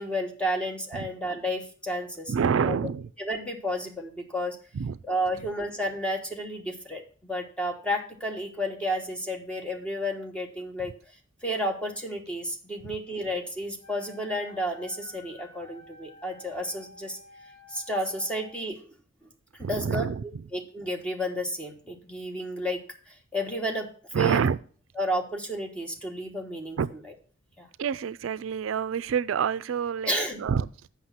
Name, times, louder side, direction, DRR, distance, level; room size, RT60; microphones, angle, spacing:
voice 1, 0.0-2.3 2.6-2.8 3.2-4.6 5.1-10.9 11.4-17.2 17.7-18.8 19.6-22.8 23.1-23.9 24.1-24.4 25.0-26.8 27.6-27.7 30.1-30.4, equal, 5° left, 2 dB, 1.2 m, -31 dB
voice 2, 2.3-3.1 4.7-5.0 19.6-20.4 24.1-24.6 26.8-26.9 27.8-30.1 30.4-30.7, right 7 dB, 80° right, 17 dB, 0.4 m, -27 dB
Wind instrument woodwind instrument, 13.8-18.6, left 3 dB, 25° left, 2.0 m, -52 dB
7.9 x 6.0 x 5.7 m, 0.43 s
head